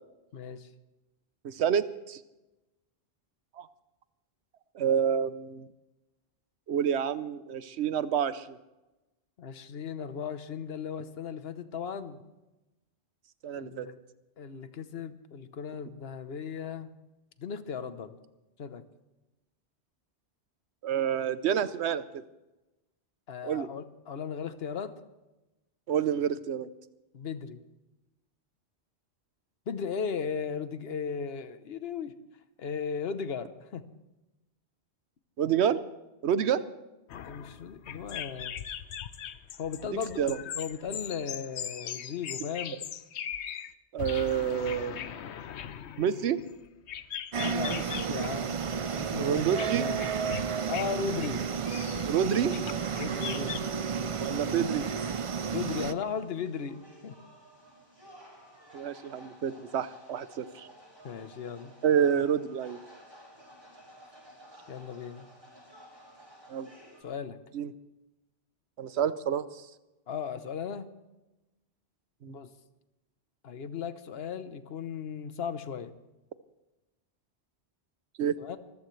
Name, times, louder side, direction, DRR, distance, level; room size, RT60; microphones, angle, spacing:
voice 1, 0.3-0.7 9.4-12.2 13.6-14.0 14.4-16.9 17.4-18.2 18.6-18.8 23.3-24.9 27.1-27.6 29.7-32.1 32.6-33.8 37.2-38.6 39.6-42.8 47.4-48.6 49.0-49.4 49.7-50.1 50.7-51.4 53.0-53.8 55.5-57.2 61.0-61.7 64.7-65.3 67.0-67.4 70.1-70.9 72.3-72.5 73.4-75.9 78.4-78.6, left 6 dB, 70° left, 11 dB, 1.1 m, -36 dB
voice 2, 1.4-2.2 3.6-3.7 4.7-5.7 6.7-8.6 13.4-13.9 20.8-22.2 23.4-23.7 25.9-26.7 35.4-35.8 36.2-36.6 40.2-40.4 43.9-45.2 46.0-46.4 49.2-49.9 52.1-52.6 54.2-54.8 58.7-60.7 61.8-62.8 66.5-66.7 67.5-67.7 68.8-69.6 72.2-72.3 78.2-78.3, right 8 dB, 85° right, 14 dB, 1.0 m, -28 dB
sound 1, 37.1-43.7 44.0-48.3 48.6-48.9 49.6-50.5 50.7-50.9 51.2-53.6, left 9 dB, 90° left, 1.0 m, -40 dB
sound 2, 47.3-55.9, right 6 dB, 45° right, 0.4 m, -32 dB
sound 3, 51.0-67.0, right 1 dB, 25° right, 6.2 m, -53 dB
24.5 x 14.5 x 3.2 m, 1.0 s
omnidirectional pair, 1.1 m